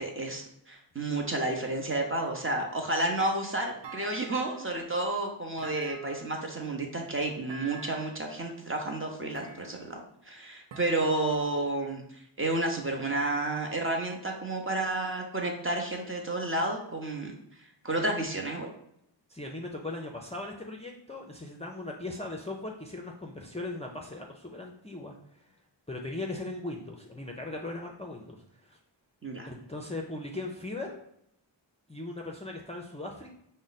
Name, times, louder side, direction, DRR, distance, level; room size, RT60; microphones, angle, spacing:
voice 1, 0.0-17.3 17.8-18.7 29.2-29.5, right 2 dB, 30° right, 1 dB, 0.8 m, -31 dB
Thump thud, 3.8-4.8 5.6-6.5 7.5-8.2 9.3-10.0 10.7-11.7, right 4 dB, 70° right, 0.6 m, -47 dB
voice 2, 19.3-25.2 25.9-28.8 29.5-31.0 31.9-33.3, left 2 dB, 15° left, 0 dB, 0.5 m, -38 dB
4.9 x 2.1 x 4.0 m, 0.75 s
wide cardioid pair, 70°, 44 cm